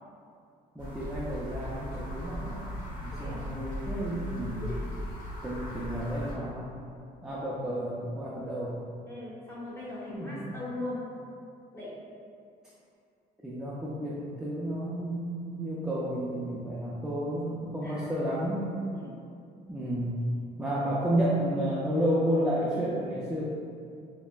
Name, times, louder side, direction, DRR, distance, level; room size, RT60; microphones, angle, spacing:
sound 1, 0.8-6.3, equal, 55° left, 1.2 m, -38 dB
voice 1, 0.8-2.7 3.0-4.7 5.4-6.7 7.2-8.7 10.1-10.6 13.4-18.7 19.7-20.2 20.6-23.5, equal, 5° right, -7 dB, 0.4 m, -31 dB
voice 2, 3.1-3.4 4.6-4.9 9.1-11.0 11.7-12.0 17.8-18.0 18.9-19.2, left 2 dB, 15° left, -8 dB, 1.2 m, -39 dB
5.5 x 2.1 x 2.4 m, 2.4 s
cardioid pair, 110°, 17 cm